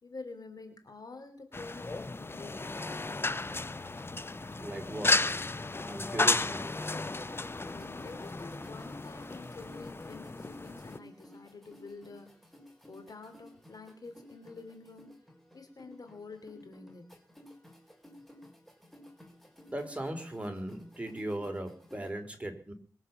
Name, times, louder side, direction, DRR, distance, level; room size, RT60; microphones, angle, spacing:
voice 1, 0.0-3.0 7.6-12.3 12.9-15.1 15.5-17.1, left 3 dB, 60° left, 3.2 m, -48 dB
sound 1, 1.5-11.0, left 2 dB, 35° left, 0.8 m, -33 dB
voice 2, 4.6-5.3 5.9-6.7 19.7-22.7, right 1 dB, 15° right, 4.0 m, -38 dB
sound 2, 5.2-22.1, left 1 dB, 5° left, 4.6 m, -55 dB
22.0 x 7.6 x 7.3 m
wide cardioid pair, 70°, 7 cm